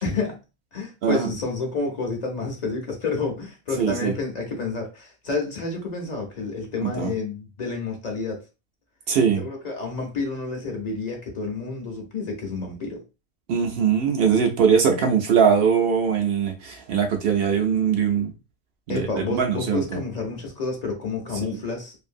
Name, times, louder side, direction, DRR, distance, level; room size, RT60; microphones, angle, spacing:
voice 1, 0.0-0.4 0.7-8.4 9.3-13.0 18.9-22.0, left 3 dB, 45° left, 0.5 m, -29 dB
voice 2, 3.8-4.1 6.8-7.1 9.1-9.4 13.5-18.3 18.9-20.0 21.5-21.6, right 7 dB, 65° right, 0.6 m, -21 dB
2.6 x 2.6 x 2.5 m
omnidirectional pair, 1.5 m